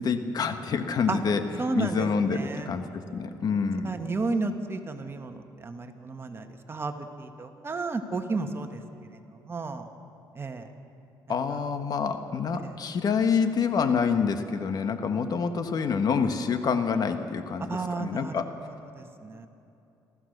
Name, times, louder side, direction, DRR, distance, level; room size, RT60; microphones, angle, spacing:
voice 1, 0.0-1.4 1.7-3.9 11.3-17.7 18.0-18.5, left 6 dB, 55° left, 8 dB, 1.4 m, -27 dB
voice 2, 1.6-2.8 3.8-9.9 10.3-10.7 11.3-11.6 12.5-12.8 17.7-19.5, right 3 dB, 30° right, 5 dB, 1.8 m, -33 dB
28.0 x 14.5 x 6.7 m, 2.8 s
supercardioid pair, 80°, 8 cm